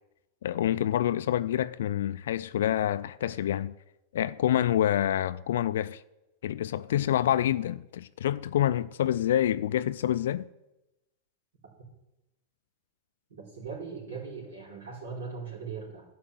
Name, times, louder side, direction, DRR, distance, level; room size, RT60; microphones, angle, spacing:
voice 1, 0.4-3.7 4.1-6.0 6.4-10.4, left 11 dB, 70° left, 0.3 m, -27 dB
voice 2, 13.5-16.0, right 5 dB, 80° right, 4.3 m, -39 dB
11.5 x 5.6 x 7.7 m
hypercardioid pair, 100°, 0 cm